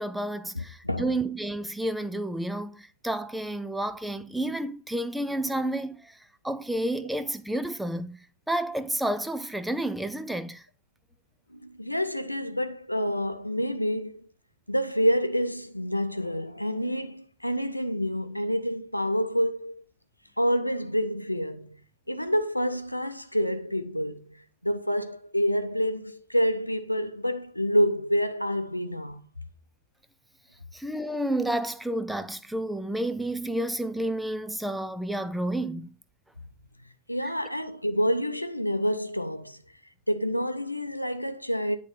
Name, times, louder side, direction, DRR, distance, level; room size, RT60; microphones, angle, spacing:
voice 1, 0.0-6.2 6.4-8.2 8.5-10.7 30.7-35.9 37.2-37.3, right 1 dB, 5° right, 0.6 m, -30 dB
voice 2, 0.5-1.1 11.5-14.2 14.7-19.7 20.4-21.8 22.1-24.2 24.6-29.2 37.1-39.6 40.1-41.8, equal, 90° left, 0.6 m, -28 dB
9.9 x 3.7 x 5.2 m
figure-of-eight pair, 90°, 0 cm